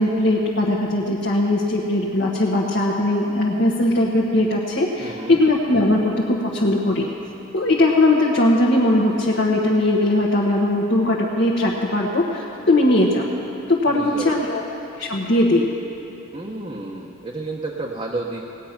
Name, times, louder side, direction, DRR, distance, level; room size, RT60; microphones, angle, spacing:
voice 1, 0.0-7.1 7.5-13.3 13.7-14.6 15.0-15.7, left 1 dB, 55° left, -3 dB, 1.2 m, -19 dB
voice 2, 5.0-5.4 13.9-14.4 16.3-18.4, right 2 dB, 25° right, -2 dB, 0.8 m, -31 dB
18.0 x 9.1 x 5.9 m, 2.9 s
head